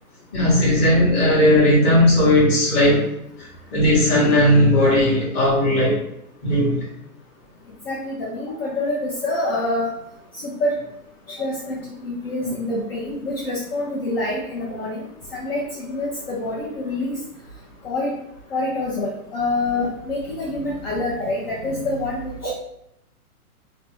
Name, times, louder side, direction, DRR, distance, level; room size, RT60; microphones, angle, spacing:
voice 1, 0.3-3.1 3.4-6.0 6.4-6.9 19.7-19.8, left 1 dB, 15° left, -7 dB, 0.9 m, -17 dB
voice 2, 7.9-9.9 10.3-10.8 11.3-17.2 17.8-18.1 18.5-22.5, left 2 dB, 40° left, -5 dB, 0.5 m, -26 dB
3.3 x 2.1 x 2.9 m, 0.79 s
hypercardioid pair, 155°, 45 cm